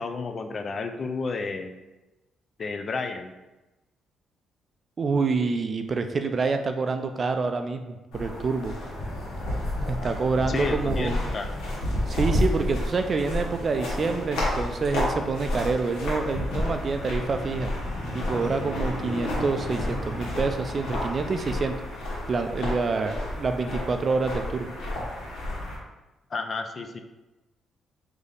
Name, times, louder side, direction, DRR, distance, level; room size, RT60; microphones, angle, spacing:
voice 1, 0.0-1.7 2.6-3.3 10.5-11.5 26.3-27.0, left 4 dB, 45° left, 7 dB, 0.4 m, -31 dB
voice 2, 5.0-8.7 9.9-11.2 12.1-17.7 18.1-21.7 22.3-24.7, right 4 dB, 40° right, 7 dB, 0.4 m, -27 dB
sound 1, 8.1-25.8, left 1 dB, 85° left, 1.3 m, -30 dB
3.3 x 2.7 x 3.9 m, 1.1 s
cardioid pair, 90°, 0 cm